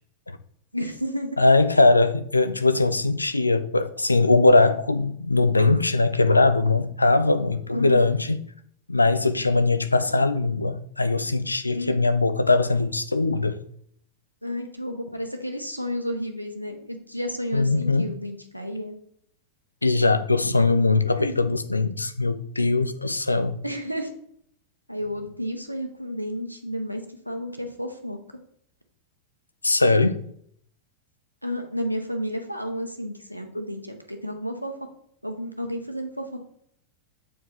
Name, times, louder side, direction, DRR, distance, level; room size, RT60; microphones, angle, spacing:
voice 1, 0.7-1.4 1.7-1.8 7.7-8.1 11.7-12.1 14.4-19.0 21.2-21.3 23.6-24.1 24.9-28.2 31.4-34.7 35.2-36.4, equal, 90° right, 0.8 m, -31 dB
voice 2, 1.4-8.4 8.9-13.6 17.5-18.1 19.8-23.6 29.6-30.2 33.5-33.6, left 3 dB, 80° left, 0.5 m, -21 dB
7.3 x 4.7 x 4.1 m
figure-of-eight pair, 90°, 0 cm